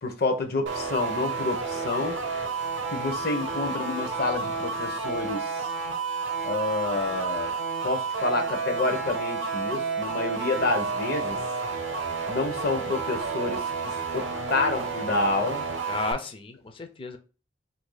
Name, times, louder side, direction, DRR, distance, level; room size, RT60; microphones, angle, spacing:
voice 1, 0.0-2.2 2.9-5.7 6.4-7.5 7.8-11.4 12.3-15.7, left 3 dB, 55° left, 0.7 m, -28 dB
sound 1, 0.7-16.1, right 4 dB, 75° right, 0.6 m, -31 dB
voice 2, 15.9-17.2, left 3 dB, 25° left, 0.4 m, -33 dB
2.7 x 2.6 x 3.9 m
head